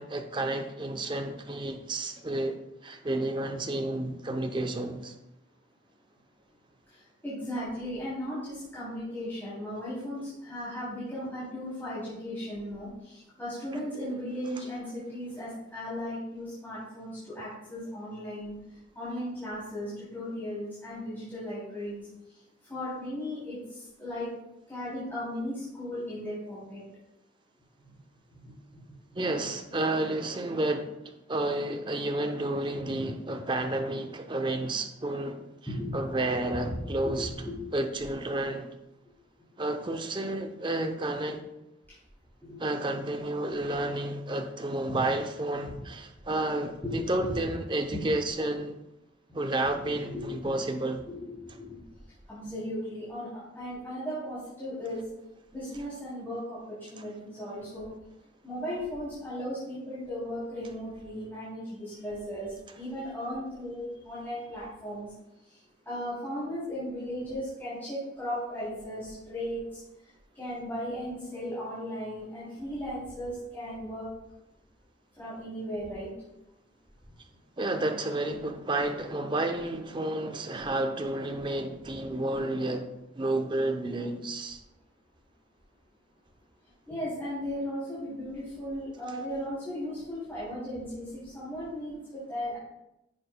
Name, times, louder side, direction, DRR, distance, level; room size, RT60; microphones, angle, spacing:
voice 1, 0.0-2.6 2.8-5.1 29.2-31.0 31.3-35.4 35.9-37.3 37.7-38.7 39.6-41.4 42.6-48.8 49.3-51.0 57.0-57.1 77.6-84.6 89.1-89.2, right 2 dB, 25° right, 5 dB, 0.6 m, -31 dB
voice 2, 7.2-18.5 18.9-22.0 22.7-23.6 24.0-24.3 24.7-26.8 28.4-28.8 29.1-29.2 32.7-33.0 35.7-36.1 36.6-37.6 42.4-42.6 43.5-43.7 44.9-45.0 46.8-47.4 47.9-48.0 49.7-50.5 51.1-51.8 52.3-53.3 53.6-55.0 55.5-57.9 58.4-65.1 65.9-69.6 70.4-74.1 75.2-76.1 86.9-92.6, equal, 10° left, -12 dB, 2.9 m, -36 dB
10.5 x 7.0 x 2.2 m, 0.88 s
head